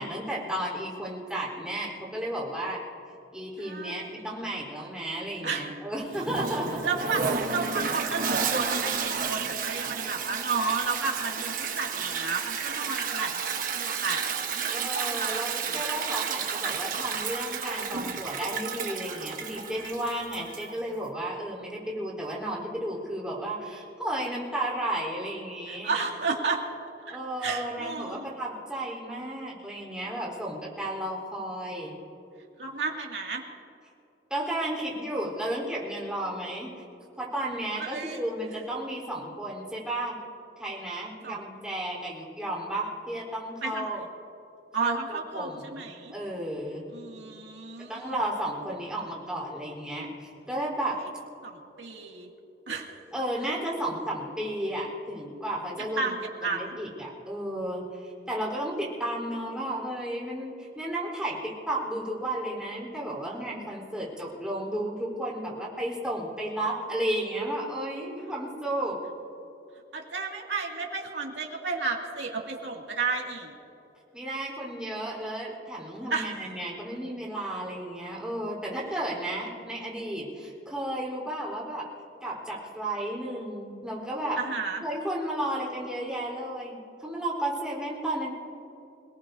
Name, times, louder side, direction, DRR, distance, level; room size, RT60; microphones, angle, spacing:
voice 1, 0.0-2.8 3.3-6.8 14.7-25.9 27.1-32.0 34.3-36.7 37.2-40.2 40.6-44.0 44.8-46.9 47.9-51.0 53.1-56.1 56.4-69.0 74.1-81.9 82.2-84.4 84.8-88.3, right 1 dB, 5° right, -4 dB, 4.0 m, -33 dB
voice 2, 3.6-4.1 5.4-5.7 6.8-15.8 25.7-26.6 27.1-28.3 32.6-33.4 37.8-38.2 41.2-41.4 43.6-43.9 44.7-46.1 46.9-48.1 51.4-52.3 52.7-52.9 56.0-56.7 69.9-73.5 76.1-76.3 84.4-84.8, right 4 dB, 85° right, -1 dB, 2.3 m, -32 dB
Toilet flush, 6.1-20.8, right 6 dB, 50° right, 1.2 m, -31 dB
28.5 x 18.5 x 2.8 m, 2.8 s
head